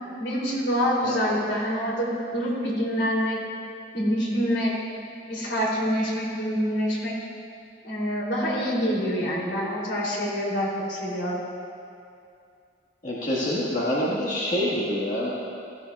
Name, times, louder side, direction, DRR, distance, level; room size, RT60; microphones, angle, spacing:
voice 1, 0.2-3.4 3.9-4.7 5.2-7.2 7.8-11.4, equal, 80° left, -5 dB, 3.1 m, -26 dB
voice 2, 1.0-1.4 13.0-15.3, left 1 dB, 45° left, -7 dB, 1.6 m, -26 dB
15.5 x 14.0 x 2.3 m, 2.5 s
head